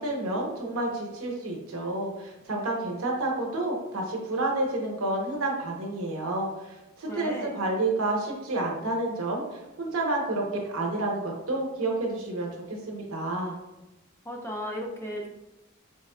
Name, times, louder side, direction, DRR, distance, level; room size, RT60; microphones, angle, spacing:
voice 1, 0.0-13.5, right 2 dB, 80° right, 0 dB, 0.9 m, -30 dB
voice 2, 7.1-7.6 14.2-15.3, equal, 10° left, 0 dB, 0.4 m, -35 dB
3.6 x 3.4 x 2.2 m, 0.97 s
head